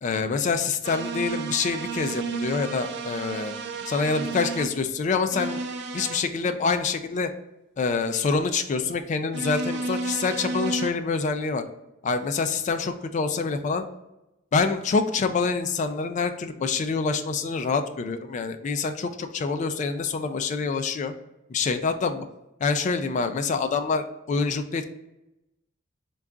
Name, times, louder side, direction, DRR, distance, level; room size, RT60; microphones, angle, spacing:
voice 1, 0.0-3.5 3.9-5.6 5.9-7.3 7.8-11.6 12.0-13.8 14.5-21.1 21.5-22.3 22.6-24.8, left 4 dB, 40° left, 8 dB, 0.3 m, -26 dB
sound 1, 0.8-4.7 5.3-6.2 9.3-10.9, right 3 dB, 55° right, 0.4 m, -32 dB
3.6 x 2.3 x 3.7 m, 0.93 s
head